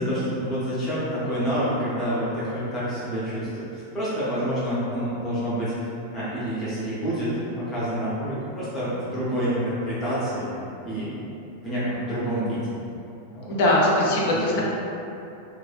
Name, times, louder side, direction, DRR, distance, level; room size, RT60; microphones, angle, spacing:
voice 1, 0.0-5.9 6.1-10.5 10.8-11.1 11.6-12.6 13.3-13.6 13.9-14.6, equal, 20° left, -11 dB, 0.8 m, -28 dB
voice 2, 13.5-14.6, left 1 dB, 50° left, -4 dB, 0.5 m, -21 dB
3.0 x 2.3 x 2.4 m, 2.8 s
figure-of-eight pair, 90°, 0 cm